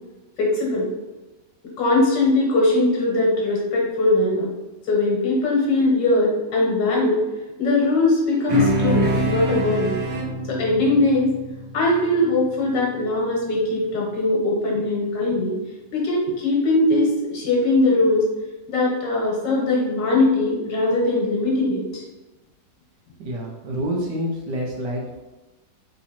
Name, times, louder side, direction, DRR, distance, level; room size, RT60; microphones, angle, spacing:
voice 1, 0.4-0.9 1.8-4.5 4.9-7.2 7.6-10.0 10.4-11.4 11.7-15.5 15.9-18.2 18.7-22.0, left 2 dB, 80° left, -2 dB, 1.8 m, -20 dB
sound 1, 8.5-13.2, right 1 dB, 55° right, 0.4 m, -26 dB
voice 2, 23.2-25.2, equal, 75° right, -1 dB, 1.4 m, -28 dB
3.9 x 2.8 x 4.2 m, 1.1 s
omnidirectional pair, 1.9 m